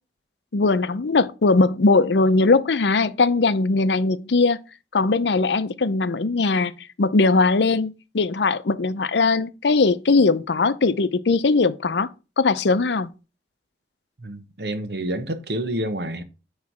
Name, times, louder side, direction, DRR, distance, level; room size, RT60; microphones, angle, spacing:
voice 1, 0.5-4.6 4.9-6.7 7.0-12.1 12.4-13.1, left 3 dB, 80° left, 0.6 m, -20 dB
voice 2, 14.2-16.2, right 1 dB, 70° right, 1.1 m, -28 dB
9.5 x 3.2 x 6.2 m
head